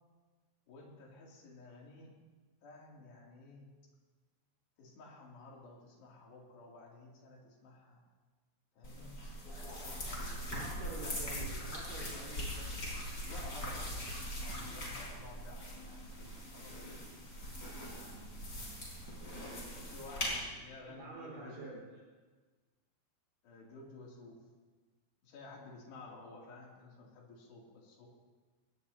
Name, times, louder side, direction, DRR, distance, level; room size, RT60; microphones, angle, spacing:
voice 1, 0.7-2.1 2.6-3.7 4.8-8.0 8.8-9.2 9.5-10.5 13.2-17.0 17.8-18.9 19.7-21.6 23.4-24.4 25.2-28.1, left 3 dB, 65° left, -2 dB, 4.7 m, -53 dB
sound 1, 8.8-20.3, equal, 20° left, 4.6 m, -41 dB
voice 2, 10.5-13.0 20.9-21.8, right 2 dB, 50° right, -5 dB, 6.0 m, -47 dB
24.5 x 18.5 x 2.8 m, 1.3 s
omnidirectional pair, 5.3 m